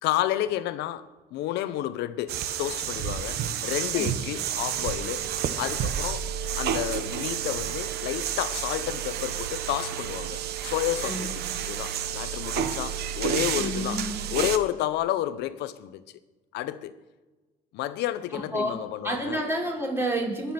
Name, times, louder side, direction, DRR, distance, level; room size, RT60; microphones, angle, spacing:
voice 1, 0.0-5.3 5.6-14.0 14.3-16.0 16.5-16.9 17.7-19.4, left 13 dB, 85° left, 0.8 m, -31 dB
sound 1, 2.3-14.6, right 9 dB, 75° right, 1.1 m, -30 dB
voice 2, 13.5-14.2 18.3-18.7 19.0-20.5, right 1 dB, 15° right, 4.1 m, -29 dB
21.0 x 7.1 x 5.9 m
cardioid pair, 110°, 17 cm